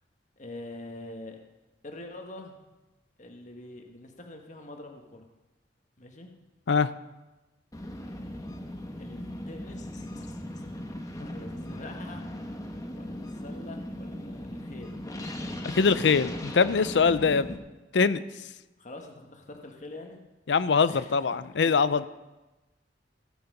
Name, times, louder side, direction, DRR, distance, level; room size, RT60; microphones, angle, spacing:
voice 1, 0.4-1.4 1.8-2.6 3.2-5.3 6.0-6.3 9.0-10.7 11.1-12.3 12.9-15.0 18.8-20.2 20.9-21.2 21.6-21.9, left 2 dB, 45° left, 3 dB, 1.4 m, -45 dB
sound 1, 7.7-17.6, left 1 dB, 20° left, 1.1 m, -38 dB
voice 2, 15.7-17.6 17.9-18.3 20.5-22.1, left 5 dB, 85° left, 15 dB, 0.5 m, -23 dB
16.5 x 7.1 x 5.3 m, 1.1 s
head